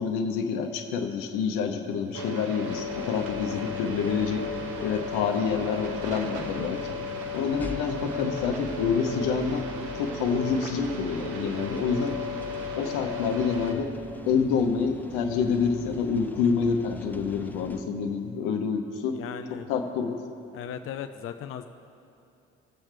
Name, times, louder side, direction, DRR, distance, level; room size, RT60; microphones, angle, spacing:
voice 1, 0.0-4.5 4.8-7.0 7.3-9.6 10.0-12.2 12.8-13.9 14.2-19.2 19.7-20.2, left 6 dB, 75° left, 5 dB, 0.9 m, -27 dB
sound 1, 2.1-13.7, left 3 dB, 70° right, 0.9 m, -35 dB
sound 2, 2.7-17.8, left 1 dB, 5° left, 0.9 m, -44 dB
voice 2, 19.1-19.7 20.5-21.7, left 9 dB, 45° left, 8 dB, 0.5 m, -37 dB
18.0 x 7.2 x 3.3 m, 2.6 s
hypercardioid pair, 50°, 32 cm